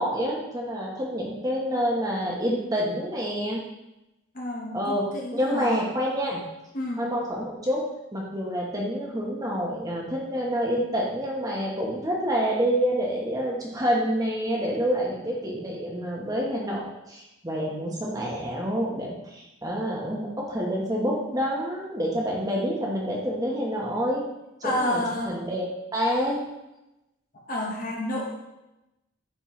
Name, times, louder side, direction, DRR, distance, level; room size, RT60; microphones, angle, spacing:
voice 1, 0.0-3.6 4.7-6.4 7.0-7.8 8.1-24.2 24.6-25.6 25.9-26.4, equal, 15° right, -3 dB, 1.1 m, -27 dB
voice 2, 4.3-5.8 6.7-7.0 24.6-25.3 27.5-28.3, left 1 dB, 40° left, -2 dB, 1.3 m, -29 dB
10.0 x 4.3 x 3.2 m, 0.94 s
head